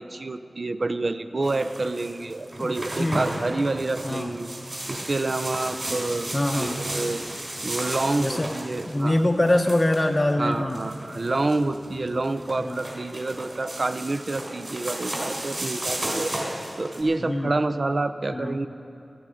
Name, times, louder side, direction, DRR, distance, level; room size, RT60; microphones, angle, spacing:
voice 1, 0.0-4.5 4.9-7.2 7.6-9.2 10.4-18.7, right 2 dB, 55° right, 11 dB, 0.5 m, -28 dB
sound 1, 1.4-17.0, right 1 dB, 40° right, 3.5 m, -34 dB
voice 2, 2.6-3.2 4.0-4.3 6.3-6.8 8.2-8.5 8.9-10.8 12.6-12.8 17.2-17.6 18.3-18.6, left 1 dB, 30° left, 3 dB, 0.7 m, -24 dB
16.5 x 12.0 x 5.1 m, 2.7 s
cardioid pair, 45°, 0 cm